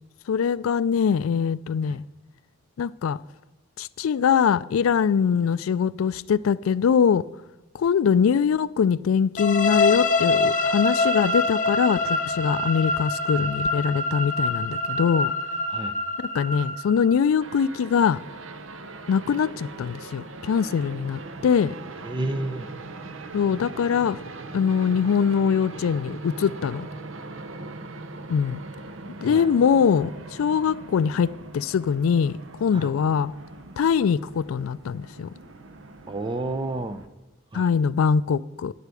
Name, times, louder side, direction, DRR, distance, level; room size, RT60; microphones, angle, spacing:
voice 1, 0.3-2.0 2.8-3.2 3.8-7.2 7.7-15.3 16.2-18.2 19.1-21.7 23.3-24.2 24.5-26.9 28.3-28.6 29.2-33.3 33.8-35.3 37.5-38.7, left 7 dB, 90° left, 0.3 m, -23 dB
sound 1, 9.4-17.2, left 2 dB, 40° left, 0.8 m, -25 dB
sound 2, 17.4-37.1, right 3 dB, 70° right, 0.8 m, -40 dB
voice 2, 22.0-22.7 29.2-29.5 32.7-32.9 36.1-37.0 37.5-37.7, right 2 dB, 25° right, 0.6 m, -30 dB
10.0 x 8.2 x 8.3 m
head